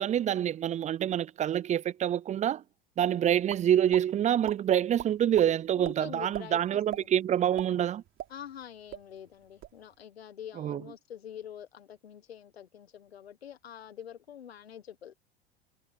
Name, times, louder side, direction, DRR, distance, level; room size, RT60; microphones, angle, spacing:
voice 1, 0.0-2.6 3.0-8.0 10.6-10.8, right 10 dB, 25° right, 0.5 m, -26 dB
sound 1, 3.5-4.0 4.4-4.6 5.0-5.5 5.8-5.9 6.3-6.5 6.9-7.1 7.4-8.6 8.9-9.0 9.4-9.8, right 12 dB, 40° right, 3.6 m, -39 dB
voice 2, 5.7-7.1 8.3-15.1, left 9 dB, 85° left, 1.5 m, -46 dB
hypercardioid pair, 85°, 30 cm